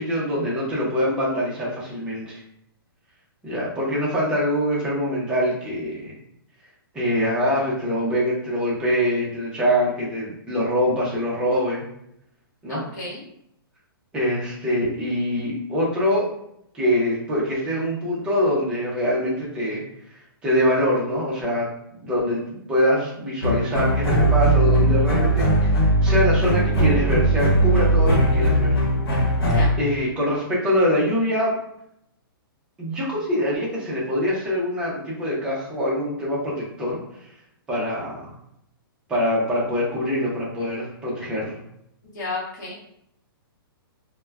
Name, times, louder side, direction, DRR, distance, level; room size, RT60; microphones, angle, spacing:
voice 1, 0.0-2.4 3.4-6.1 6.9-11.8 12.6-12.8 14.1-16.3 16.7-19.8 20.4-21.7 22.0-25.7 26.0-28.8 29.8-31.5 32.8-37.0 37.7-38.3 39.1-41.6, equal, 5° right, -6 dB, 0.5 m, -24 dB
voice 2, 12.7-13.2 29.5-29.7 42.1-42.8, left 3 dB, 45° left, -6 dB, 0.9 m, -32 dB
sound 1, 23.4-29.7, right 1 dB, 80° left, 0.9 m, -19 dB
2.2 x 2.1 x 3.3 m, 0.75 s
hypercardioid pair, 170°, 13 cm